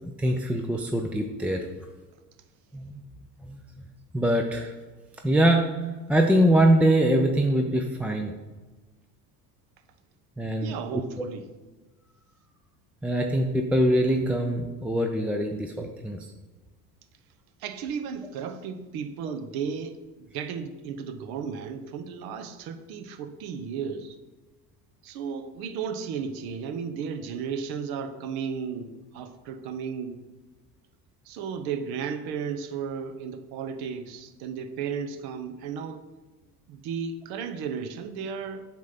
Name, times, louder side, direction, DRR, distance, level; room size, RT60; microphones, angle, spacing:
voice 1, 0.2-1.6 2.7-2.9 3.5-3.6 4.1-4.7 5.2-5.6 6.1-8.3 10.4-10.7 13.0-16.2, right 1 dB, 5° right, 2 dB, 0.5 m, -23 dB
voice 2, 10.6-11.4 17.6-24.2 25.0-30.2 31.3-36.0 36.7-38.7, right 6 dB, 55° right, 8 dB, 0.9 m, -34 dB
7.3 x 3.8 x 5.7 m, 1.3 s
figure-of-eight pair, 65°, 46 cm